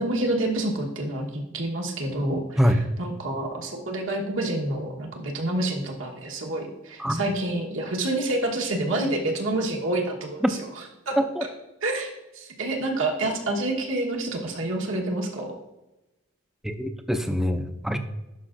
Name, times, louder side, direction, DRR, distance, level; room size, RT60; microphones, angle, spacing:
voice 1, 0.0-2.6 3.0-10.4 11.1-11.2 11.8-12.1 12.3-15.5, right 2 dB, 80° right, 1 dB, 1.2 m, -28 dB
voice 2, 16.6-18.0, equal, ahead, 7 dB, 0.4 m, -24 dB
11.0 x 5.2 x 2.5 m, 0.98 s
head